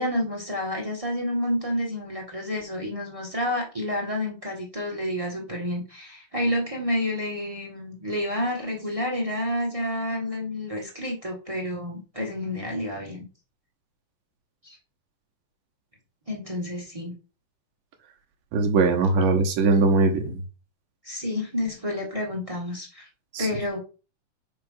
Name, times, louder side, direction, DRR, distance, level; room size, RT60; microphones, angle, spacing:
voice 1, 0.0-13.3 14.6-14.8 16.3-17.2 19.2-19.3 21.0-23.1 23.4-23.8, left 1 dB, 35° right, -1 dB, 0.5 m, -29 dB
voice 2, 18.5-20.4 23.3-23.5, right 3 dB, 80° right, 3 dB, 2.8 m, -21 dB
5.8 x 4.8 x 5.6 m, 0.34 s
omnidirectional pair, 3.7 m